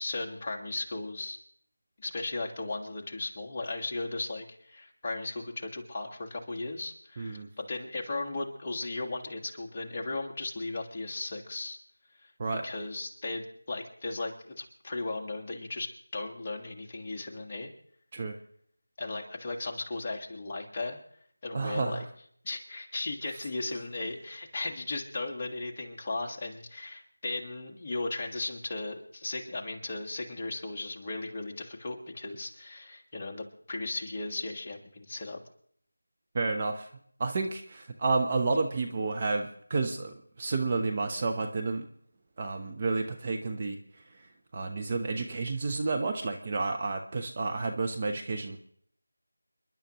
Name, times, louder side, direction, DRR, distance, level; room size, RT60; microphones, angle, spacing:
voice 1, 0.0-1.4 2.0-11.8 12.6-17.7 19.0-21.0 21.4-22.0 22.4-35.4, left 2 dB, 25° left, 0 dB, 1.5 m, -36 dB
voice 2, 7.2-7.5 12.4-12.7 18.1-18.4 21.5-22.0 36.3-36.9 37.2-41.9 42.4-43.8 44.5-48.6, right 3 dB, 25° right, 4 dB, 0.8 m, -30 dB
29.5 x 11.0 x 3.0 m, 0.64 s
figure-of-eight pair, 170°, 0 cm